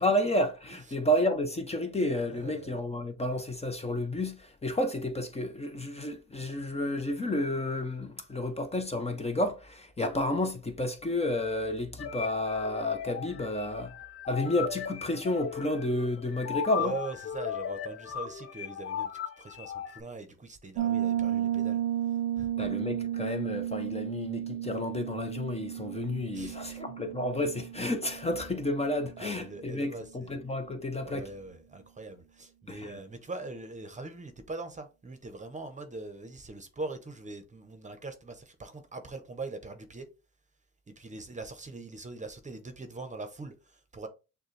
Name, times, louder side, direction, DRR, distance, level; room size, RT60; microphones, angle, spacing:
voice 1, 0.0-13.9 14.3-16.9 22.6-31.3 32.7-32.9, left 1 dB, 20° left, 0.8 m, -31 dB
voice 2, 2.3-2.7 16.7-19.1 19.4-21.8 22.4-22.7 26.3-26.8 29.2-30.4 31.0-40.1 40.9-44.1, right 3 dB, 25° right, 0.9 m, -42 dB
sound 1, 12.0-20.0, left 8 dB, 50° left, 0.7 m, -37 dB
Piano, 20.8-29.3, right 11 dB, 80° right, 0.7 m, -33 dB
6.4 x 2.3 x 3.2 m
cardioid pair, 90°, 30 cm